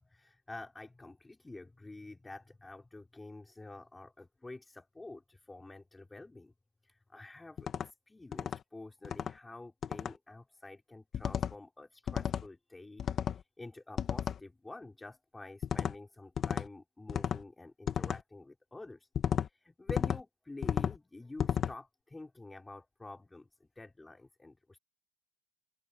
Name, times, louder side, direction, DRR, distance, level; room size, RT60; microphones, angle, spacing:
voice 1, 0.0-6.5 6.8-13.1 13.3-19.1 19.4-24.8, left 2 dB, 10° left, 5.3 m, -49 dB
sound 1, 7.6-7.9 8.3-8.6 9.0-9.3 9.8-10.1 11.1-11.5 12.1-12.5 13.0-13.4 14.0-14.4 15.6-15.9 16.4-16.7 17.1-17.4 17.9-18.2 19.1-19.5 19.9-20.2 20.6-21.0 21.4-21.7, left 8 dB, 35° left, 1.3 m, -33 dB
open air
cardioid pair, 140°, 0 cm